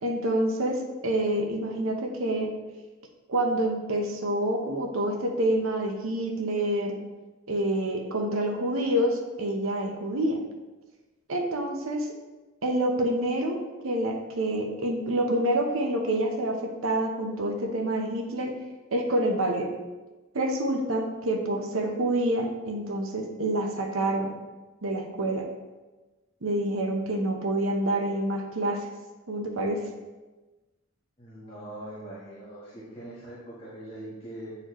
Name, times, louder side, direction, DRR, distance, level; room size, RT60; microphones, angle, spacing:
voice 1, 0.0-2.5 3.3-7.0 7.5-10.4 11.3-12.2 12.6-13.6 13.8-18.5 18.9-19.7 20.3-24.3 24.8-25.4 26.4-28.9 29.3-29.8, right 1 dB, 75° right, 2 dB, 0.8 m, -27 dB
voice 2, 31.2-34.6, right 1 dB, 25° left, -9 dB, 1.2 m, -42 dB
7.9 x 4.1 x 3.1 m, 1.2 s
head